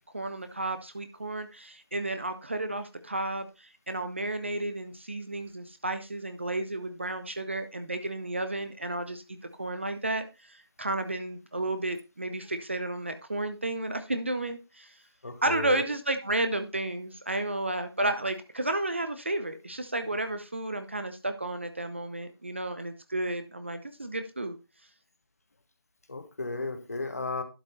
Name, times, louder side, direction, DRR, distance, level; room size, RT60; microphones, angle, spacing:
voice 1, 0.1-14.9 15.4-24.6, right 2 dB, 30° right, 9 dB, 0.7 m, -32 dB
voice 2, 15.2-15.9 26.1-27.4, left 3 dB, 40° left, 8 dB, 1.3 m, -34 dB
11.5 x 5.2 x 4.0 m, 0.27 s
figure-of-eight pair, 165°, 13 cm